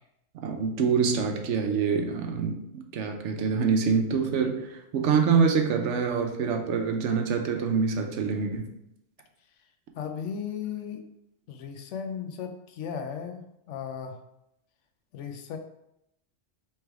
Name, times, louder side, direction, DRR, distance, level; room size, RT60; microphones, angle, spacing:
voice 1, 0.4-8.6, right 5 dB, 80° right, 4 dB, 1.0 m, -25 dB
voice 2, 9.9-11.0 11.5-13.4 13.7-14.2 15.1-15.6, left 7 dB, 80° left, 6 dB, 0.9 m, -35 dB
3.3 x 3.3 x 4.5 m, 0.83 s
omnidirectional pair, 1.2 m